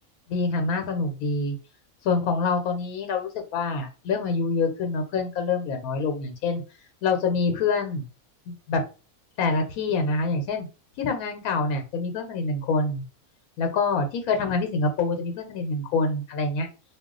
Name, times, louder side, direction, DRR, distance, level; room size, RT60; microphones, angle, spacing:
voice 1, 0.3-1.5 2.0-6.6 7.0-8.1 8.5-8.8 9.4-10.7 11.0-13.0 13.6-16.7, left 4 dB, 85° left, 6 dB, 1.1 m, -26 dB
2.3 x 2.3 x 3.7 m, 0.31 s
omnidirectional pair, 1.5 m